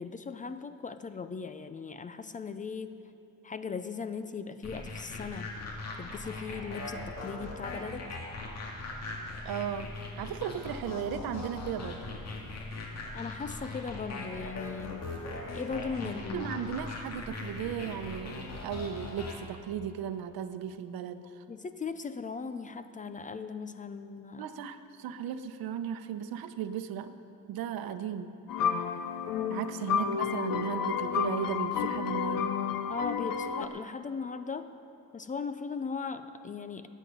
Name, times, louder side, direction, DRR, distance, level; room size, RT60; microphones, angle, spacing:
voice 1, 0.0-3.0 3.4-5.5 6.0-8.1 13.1-15.1 15.5-16.7 21.5-24.5 29.4-29.7 32.9-34.7 35.1-36.9, left 5 dB, 25° left, 11 dB, 0.4 m, -38 dB
sound 1, 4.6-19.4, left 2 dB, 45° left, 2.0 m, -40 dB
voice 2, 9.4-9.9 10.2-12.1 16.0-21.2 24.4-27.1 27.5-28.3 29.5-32.5, right 8 dB, 85° right, 10 dB, 0.9 m, -36 dB
sound 2, 28.5-33.7, left 7 dB, 70° left, 0.8 m, -31 dB
20.5 x 8.3 x 5.5 m, 2.9 s
cardioid pair, 160°, 35 cm